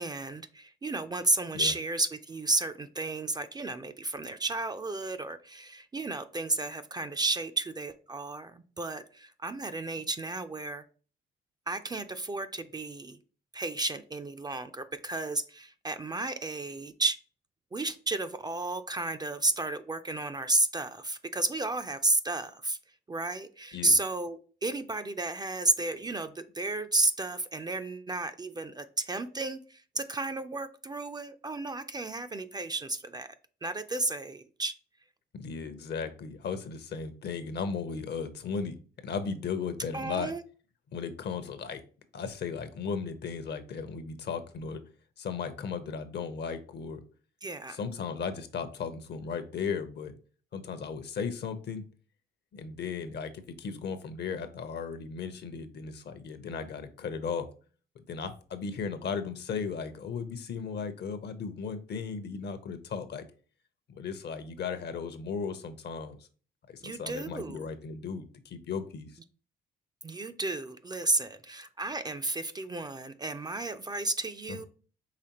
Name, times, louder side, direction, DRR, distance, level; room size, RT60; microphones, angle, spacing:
voice 1, 0.0-10.8 11.7-13.2 13.5-17.2 17.7-22.8 23.1-33.3 33.6-34.7 39.9-40.4 47.4-47.8 66.8-67.6 70.0-74.7, right 2 dB, 20° right, 9 dB, 0.3 m, -32 dB
voice 2, 35.3-38.8 39.0-40.3 40.9-41.8 42.1-44.8 45.2-47.0 47.7-50.1 50.5-51.9 52.5-57.5 58.0-63.2 63.9-66.3 66.7-69.2 74.5-74.7, left 5 dB, 60° left, 11 dB, 0.7 m, -36 dB
4.9 x 3.4 x 2.9 m, 0.39 s
cardioid pair, 90°, 20 cm